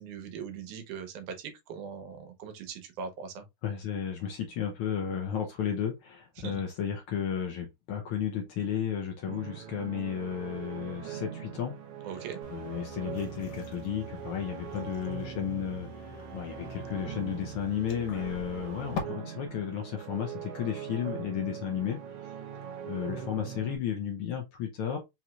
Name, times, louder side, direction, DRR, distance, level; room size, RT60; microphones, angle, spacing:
voice 1, 0.0-3.4 6.4-6.6 12.0-12.4, right 6 dB, 90° right, 2.4 m, -40 dB
voice 2, 3.6-11.8 12.0-22.3 22.8-25.0, left 8 dB, 90° left, 1.2 m, -33 dB
sound 1, 9.3-23.8, right 8 dB, 70° right, 1.4 m, -41 dB
sound 2, 12.4-19.0, left 5 dB, 75° left, 2.3 m, -44 dB
5.3 x 3.0 x 2.4 m
omnidirectional pair, 3.4 m